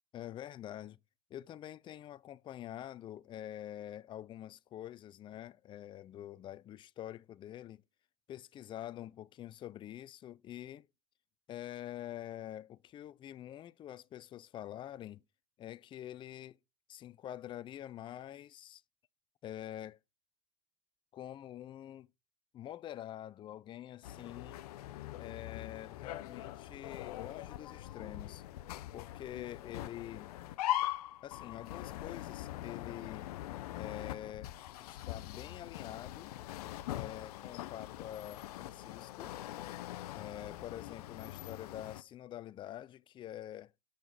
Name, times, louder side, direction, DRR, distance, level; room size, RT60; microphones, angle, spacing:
voice 1, 0.1-1.0 1.3-7.8 8.3-10.9 11.5-15.2 15.6-16.6 16.9-18.8 19.4-20.0 21.1-22.1 22.5-24.6 25.2-28.4 28.9-30.3 31.2-33.3 33.8-34.5 34.8-36.3 36.9-39.3 40.1-43.7, left 12 dB, 25° left, 0.3 m, -46 dB
sound 1, 24.0-42.0, left 14 dB, 80° left, 0.5 m, -42 dB
5.8 x 5.0 x 4.6 m
hypercardioid pair, 105°, 19 cm